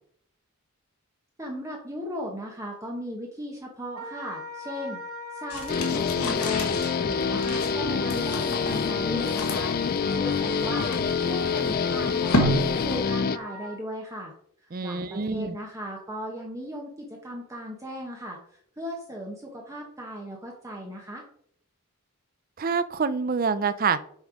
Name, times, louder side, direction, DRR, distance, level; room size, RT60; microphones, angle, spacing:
voice 1, 1.4-5.0 5.3-6.8 7.1-9.7 10.1-14.3 14.8-21.2, equal, 15° right, -1 dB, 1.0 m, -37 dB
Wind instrument woodwind instrument, 3.9-13.8, left 2 dB, 75° right, 1.6 m, -39 dB
sound 1, 5.5-13.2, equal, 80° left, 1.6 m, -32 dB
Guitar, 5.7-13.4, left 6 dB, 40° left, 0.3 m, -26 dB
voice 2, 14.7-15.6 22.6-24.0, right 5 dB, 40° right, 14 dB, 0.5 m, -26 dB
6.3 x 5.4 x 4.9 m, 0.66 s
head